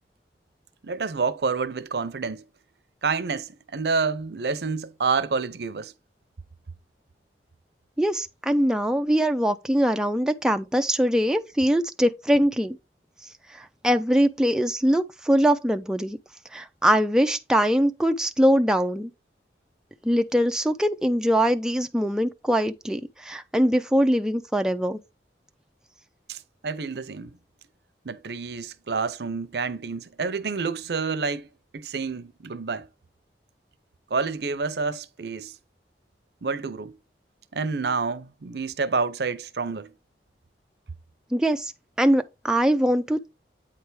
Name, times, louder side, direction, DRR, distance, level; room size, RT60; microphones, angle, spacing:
voice 1, 0.8-2.4 3.0-5.9 26.3-27.4 28.0-32.9 34.1-35.6 36.4-37.0 37.5-39.9, right 4 dB, 70° right, 0.6 m, -28 dB
voice 2, 8.0-12.8 13.5-16.2 16.5-19.1 20.0-25.0 41.3-41.7 42.0-43.3, equal, 5° right, 0.3 m, -22 dB
8.7 x 3.3 x 4.6 m
head